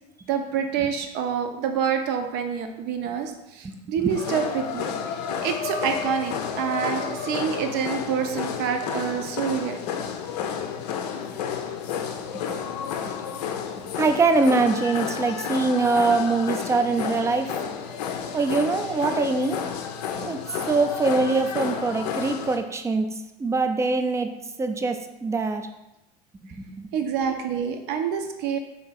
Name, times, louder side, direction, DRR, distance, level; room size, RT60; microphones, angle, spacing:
voice 1, 0.3-9.8 26.9-28.6, right 7 dB, 55° right, 5 dB, 0.6 m, -27 dB
sound 1, 4.1-22.6, left 7 dB, 70° left, 0.5 m, -31 dB
voice 2, 13.8-17.5 18.3-19.6 20.2-20.4 20.7-23.1 23.4-24.3 24.6-25.7 26.6-26.9, right 3 dB, 15° right, 7 dB, 0.4 m, -23 dB
3.7 x 2.6 x 4.1 m, 0.94 s
hypercardioid pair, 80°, 21 cm